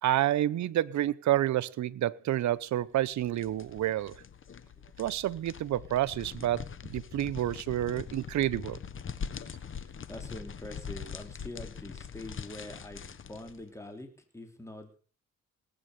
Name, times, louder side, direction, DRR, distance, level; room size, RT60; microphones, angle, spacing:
voice 1, 0.0-4.2 5.0-6.6 6.9-8.8, right 13 dB, 70° right, 0.9 m, -29 dB
sound 1, 3.0-13.6, left 6 dB, 40° left, 1.4 m, -43 dB
voice 2, 9.8-15.0, left 1 dB, 10° left, 3.4 m, -45 dB
18.5 x 8.9 x 6.8 m
cardioid pair, 90°, 30 cm